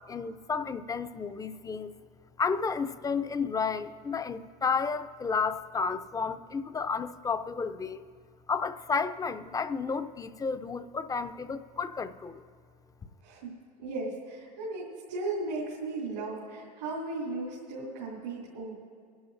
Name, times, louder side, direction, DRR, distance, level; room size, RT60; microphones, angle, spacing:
voice 1, 0.1-1.9 2.4-8.0 8.5-12.4, left 5 dB, 15° left, 11 dB, 0.5 m, -32 dB
voice 2, 13.2-13.5 13.8-18.7, right 2 dB, 85° right, -5 dB, 3.1 m, -36 dB
29.0 x 11.0 x 2.6 m, 2.1 s
hypercardioid pair, 95°, 21 cm